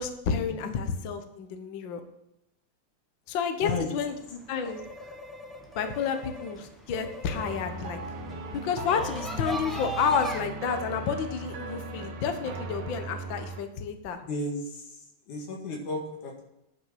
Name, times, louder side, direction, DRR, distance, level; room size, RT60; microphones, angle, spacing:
voice 1, 0.0-2.0 3.3-4.9 5.8-8.0 8.5-14.2, left 6 dB, 60° left, 7 dB, 1.3 m, -30 dB
sound 1, 4.0-10.4, right 1 dB, ahead, 0.6 m, -40 dB
sound 2, 7.3-13.6, right 2 dB, 80° right, 2.6 m, -37 dB
voice 2, 14.2-14.9 15.3-16.4, left 2 dB, 85° left, 1 dB, 3.4 m, -33 dB
9.9 x 6.0 x 7.6 m, 0.88 s
omnidirectional pair, 3.4 m